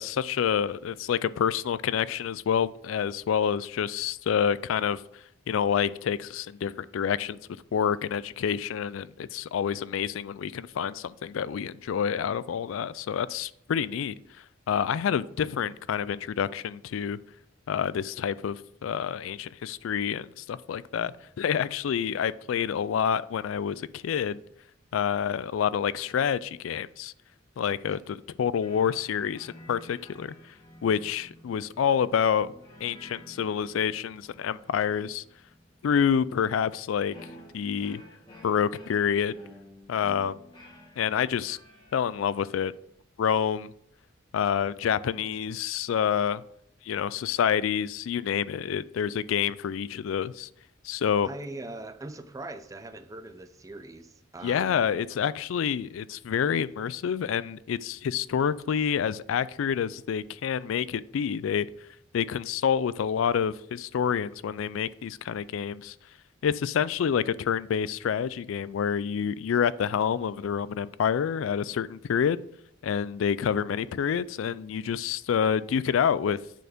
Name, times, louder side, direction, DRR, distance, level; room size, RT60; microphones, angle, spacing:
voice 1, 0.0-7.4 7.7-17.2 17.7-24.4 24.9-27.1 27.6-30.4 30.8-32.5 32.8-35.2 35.8-37.1 37.5-38.0 38.4-39.4 39.9-40.4 41.0-41.6 41.9-42.7 43.2-43.7 44.3-46.4 46.8-50.5 50.8-51.3 54.4-61.7 62.1-66.0 66.4-72.4 72.8-76.4, left 8 dB, 90° left, 0.3 m, -28 dB
sound 1, 28.6-42.6, left 1 dB, 25° left, 1.7 m, -52 dB
voice 2, 51.2-54.8, right 2 dB, 15° right, 0.5 m, -41 dB
9.2 x 4.4 x 5.0 m
head